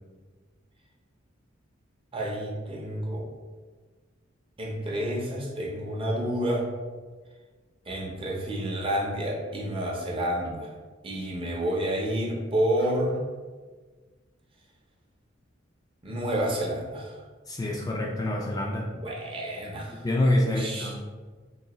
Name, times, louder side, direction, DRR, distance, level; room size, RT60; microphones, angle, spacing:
voice 1, 2.1-3.3 4.6-6.7 7.9-10.7 11.0-13.2 16.0-17.2 18.9-20.0 20.4-20.9, right 1 dB, 25° right, -2 dB, 0.6 m, -29 dB
voice 2, 17.5-18.9 20.0-21.0, left 1 dB, 20° left, -2 dB, 0.3 m, -26 dB
3.9 x 2.6 x 3.0 m, 1.4 s
head